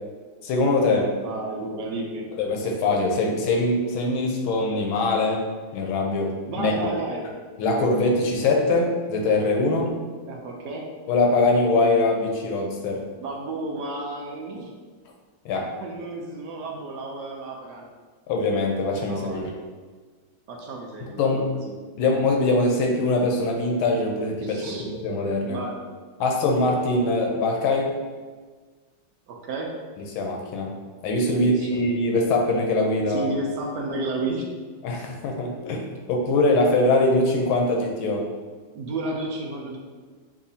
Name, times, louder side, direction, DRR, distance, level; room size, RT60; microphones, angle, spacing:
voice 1, 0.4-1.1 2.4-5.4 5.7-6.7 7.6-9.9 11.1-13.0 15.4-15.7 18.3-19.5 21.2-21.5 22.0-25.6 26.2-27.9 30.1-30.7 31.0-33.3 34.8-38.3, left 2 dB, 85° left, 0 dB, 1.5 m, -22 dB
voice 2, 1.2-2.2 6.4-7.3 9.8-9.9 10.3-10.9 13.2-14.7 15.5-17.8 19.1-19.5 20.5-21.2 21.6-21.8 24.4-24.8 25.5-25.7 29.3-29.7 31.3-31.8 33.1-34.5 38.7-39.8, right 2 dB, 70° right, 0 dB, 1.1 m, -32 dB
6.9 x 2.7 x 2.7 m, 1.4 s
omnidirectional pair, 2.2 m